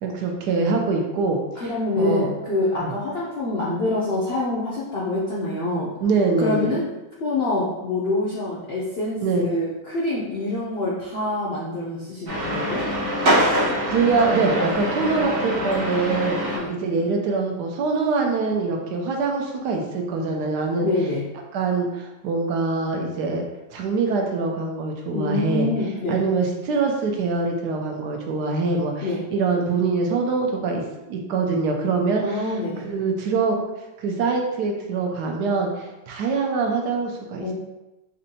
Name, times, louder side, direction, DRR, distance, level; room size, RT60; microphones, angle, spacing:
voice 1, 0.0-1.7 2.0-2.3 2.8-2.9 6.0-6.7 9.2-9.5 13.9-16.4 16.7-20.9 21.5-23.5 23.7-25.7 26.1-32.5 32.8-33.6 34.0-37.5, right 4 dB, 75° right, 2 dB, 1.1 m, -24 dB
voice 2, 1.6-5.9 6.4-6.8 7.2-12.9 16.5-16.7 20.8-21.2 25.1-26.2 29.0-29.2 32.2-32.9 37.4-37.5, left 2 dB, 70° left, -6 dB, 0.5 m, -26 dB
sound 1, 12.3-16.6, equal, 45° right, 0.8 m, -24 dB
4.2 x 2.7 x 2.7 m, 0.99 s
omnidirectional pair, 1.9 m